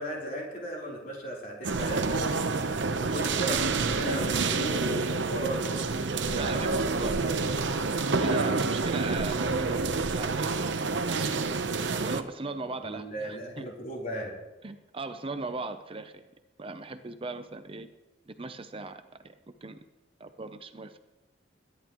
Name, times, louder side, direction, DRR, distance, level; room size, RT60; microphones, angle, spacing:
voice 1, 0.0-5.9 12.8-14.4, equal, 50° left, -3 dB, 3.8 m, -36 dB
sound 1, 1.6-12.2, right 4 dB, 70° right, 0.8 m, -28 dB
voice 2, 6.4-7.6 8.2-10.6 11.1-11.4 12.0-13.7 14.6-16.2 16.6-17.9 18.3-19.3 19.6-19.8 20.2-21.0, right 3 dB, 30° right, 9 dB, 0.6 m, -38 dB
22.0 x 10.5 x 3.1 m, 1.0 s
head